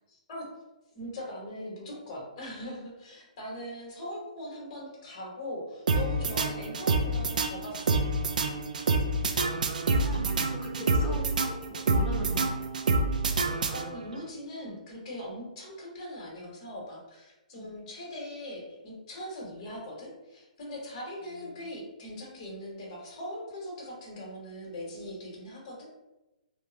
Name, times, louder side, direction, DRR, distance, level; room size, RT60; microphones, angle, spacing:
voice 1, 0.1-0.5 0.9-8.0 13.7-25.9, left 1 dB, 40° left, -3 dB, 1.1 m, -41 dB
sound 1, 5.9-14.2, right 3 dB, 80° right, 0.4 m, -27 dB
voice 2, 9.9-12.5 14.6-14.8 17.6-17.7, left 2 dB, 15° left, -1 dB, 0.5 m, -40 dB
3.2 x 2.1 x 2.7 m, 1.0 s
hypercardioid pair, 155°, 4 cm